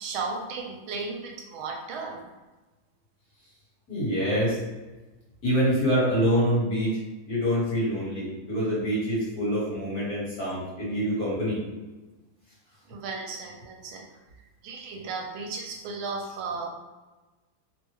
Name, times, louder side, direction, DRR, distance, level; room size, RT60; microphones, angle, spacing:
voice 1, 0.0-2.2 12.9-14.1 14.6-16.7, right 4 dB, 80° right, 1 dB, 1.4 m, -35 dB
voice 2, 3.9-4.6 5.4-7.0 7.3-11.6, equal, 55° left, -8 dB, 1.5 m, -25 dB
3.4 x 2.1 x 3.0 m, 1.2 s
omnidirectional pair, 2.3 m